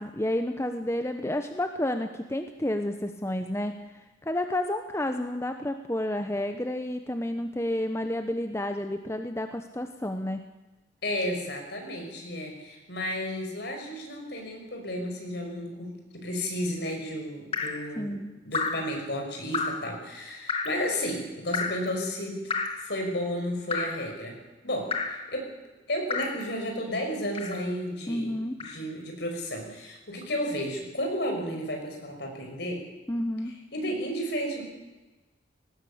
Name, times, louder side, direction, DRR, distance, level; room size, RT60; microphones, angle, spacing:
voice 1, 0.0-3.8 4.2-10.4 18.0-18.3 28.1-28.6 33.1-33.5, left 1 dB, 15° left, 7 dB, 0.9 m, -30 dB
voice 2, 11.0-15.9 16.1-22.4 22.8-24.4 24.6-25.5 25.9-28.3 28.6-32.8 33.7-34.6, equal, 60° left, 2 dB, 5.8 m, -32 dB
Drip, 17.5-17.9 18.5-18.9 19.5-19.9 20.5-20.8 21.5-21.9 22.5-22.9 23.7-24.0 24.9-25.2 26.1-26.4 27.3-27.7 28.6-28.8, left 4 dB, 30° left, 2.0 m, -31 dB
18.5 x 18.0 x 8.6 m, 1.1 s
head